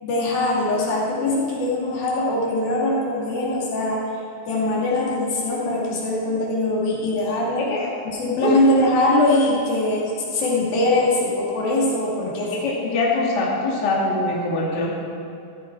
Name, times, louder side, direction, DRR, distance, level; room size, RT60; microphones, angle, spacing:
voice 1, 0.0-4.0 4.5-7.6 8.1-12.5, left 2 dB, 75° left, -4 dB, 4.2 m, -22 dB
voice 2, 12.5-14.9, left 2 dB, 30° left, -4 dB, 2.4 m, -23 dB
14.5 x 14.5 x 4.6 m, 2.5 s
omnidirectional pair, 4.2 m